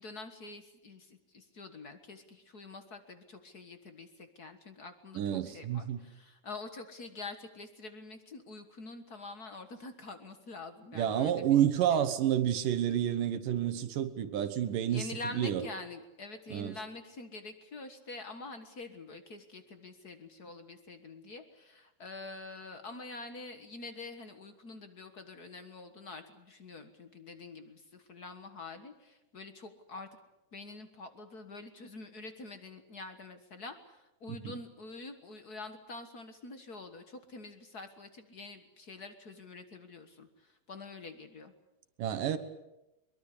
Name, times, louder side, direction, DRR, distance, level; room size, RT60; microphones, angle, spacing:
voice 1, 0.0-11.6 11.9-12.0 14.9-30.1 30.5-41.5, left 3 dB, 55° left, 8 dB, 1.0 m, -46 dB
voice 2, 5.2-6.0 10.9-15.6 16.5-16.8 34.4-34.5 42.0-42.4, right 10 dB, 70° right, 10 dB, 2.8 m, -29 dB
23.0 x 23.0 x 8.6 m, 0.94 s
omnidirectional pair, 4.2 m